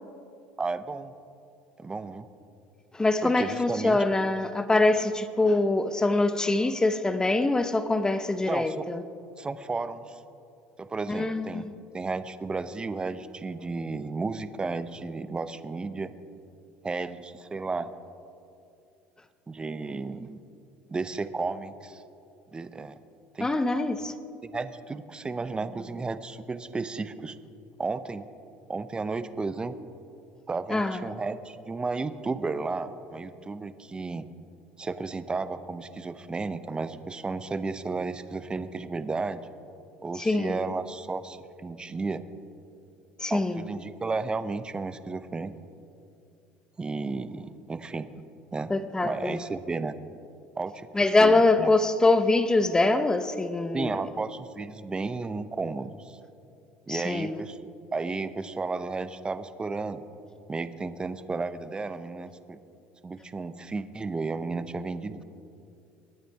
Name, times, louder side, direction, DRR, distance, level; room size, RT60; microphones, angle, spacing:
voice 1, 0.6-1.1 1.8-2.3 3.2-4.0 8.5-8.9 9.4-10.2 10.8-11.6 11.9-16.1 16.8-17.9 19.5-20.4 20.9-22.0 22.5-23.0 23.3-23.5 24.4-27.4 27.8-28.3 28.7-29.8 30.5-34.3 34.8-39.5 40.0-42.2 43.3-45.5 46.8-48.1 48.5-48.7 49.0-50.0 50.6-51.7 53.7-56.2 56.9-57.6 57.9-60.0 60.5-62.6 63.0-65.2, right 3 dB, 20° right, 0.8 m, -33 dB
voice 2, 2.9-9.0 11.1-11.7 23.4-24.1 30.7-31.0 40.2-40.6 43.2-43.6 48.7-49.4 50.9-53.9 56.9-57.4, left 2 dB, 15° left, 0.8 m, -24 dB
22.5 x 9.1 x 4.8 m
supercardioid pair, 90°, 5 cm